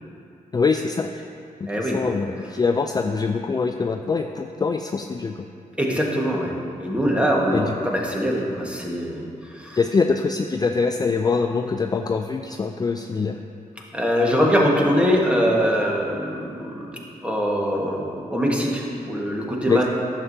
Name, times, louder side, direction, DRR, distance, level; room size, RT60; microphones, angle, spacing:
voice 1, 0.5-1.1 1.6-5.4 7.5-7.7 9.8-13.4 19.7-19.8, left 4 dB, 25° left, 5 dB, 0.3 m, -23 dB
voice 2, 1.7-2.0 5.8-9.8 13.9-19.8, equal, 10° right, -2 dB, 1.4 m, -23 dB
11.0 x 7.1 x 2.7 m, 2.5 s
cardioid pair, 70°, 15 cm